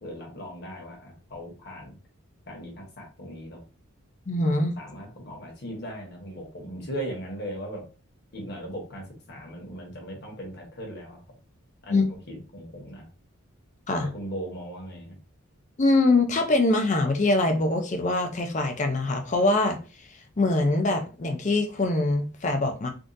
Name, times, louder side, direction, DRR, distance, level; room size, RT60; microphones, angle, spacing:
voice 1, 0.0-2.0 2.5-3.6 4.8-7.9 8.3-11.2 11.8-13.1 14.0-15.2, equal, 50° left, 1.1 m, -38 dB
voice 2, 4.3-4.7 11.9-12.1 13.9-14.1 15.8-19.8 20.4-22.9, left 2 dB, 35° left, 0.4 m, -23 dB
3.6 x 2.4 x 2.6 m
head